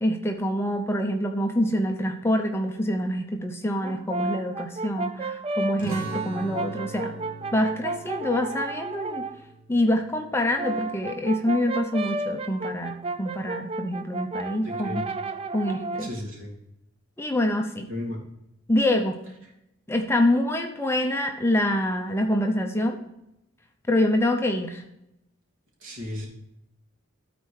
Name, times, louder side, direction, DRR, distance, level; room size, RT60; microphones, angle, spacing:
voice 1, 0.0-7.1 7.5-9.3 9.7-15.0 15.5-16.1 17.2-17.9 18.7-19.2 19.9-23.0 23.9-24.8, left 1 dB, 10° left, 4 dB, 0.6 m, -25 dB
Brass instrument, 3.8-9.4 10.3-16.2, right 2 dB, 25° right, 0.3 m, -33 dB
sound 1, 5.8-11.0, right 3 dB, 85° right, 1.9 m, -40 dB
voice 2, 14.6-15.0 16.0-16.5 17.9-18.2 25.8-26.3, left 1 dB, 70° right, -2 dB, 2.8 m, -34 dB
13.0 x 4.3 x 4.8 m, 0.85 s
head